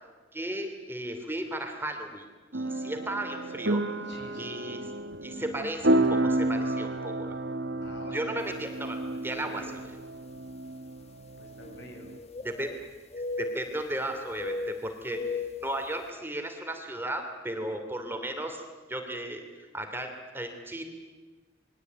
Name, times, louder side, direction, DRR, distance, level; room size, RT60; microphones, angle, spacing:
voice 1, 0.3-2.2 2.5-3.8 4.4-4.8 5.2-7.4 8.1-9.6 12.4-12.7 13.4-15.2 15.6-18.6 18.9-20.8, right 1 dB, 10° right, 4 dB, 2.8 m, -35 dB
sound 1, 2.5-12.2, right 1 dB, 65° right, 1.6 m, -31 dB
voice 2, 4.0-4.8 7.8-8.8 9.0-9.8 11.3-12.2, left 1 dB, 60° left, 4 dB, 7.0 m, -48 dB
sound 2, 8.7-8.8 9.6-9.7 11.6-12.8 13.1-14.0 14.4-15.7, left 3 dB, 35° left, 1.6 m, -36 dB
28.5 x 22.0 x 9.3 m, 1.3 s
head